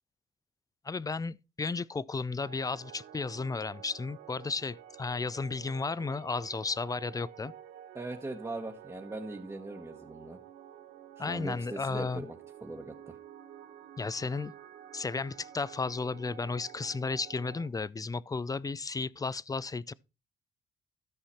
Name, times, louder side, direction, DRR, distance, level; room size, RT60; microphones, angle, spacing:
voice 1, 0.9-7.5 11.2-12.3 14.0-14.5 14.9-19.9, left 4 dB, 20° left, 0.4 m, -34 dB
sound 1, 2.4-17.7, right 10 dB, 90° right, 1.4 m, -51 dB
voice 2, 7.9-10.4 11.2-13.2, right 2 dB, 15° right, 1.1 m, -40 dB
13.0 x 5.6 x 4.3 m
cardioid pair, 90°, 20 cm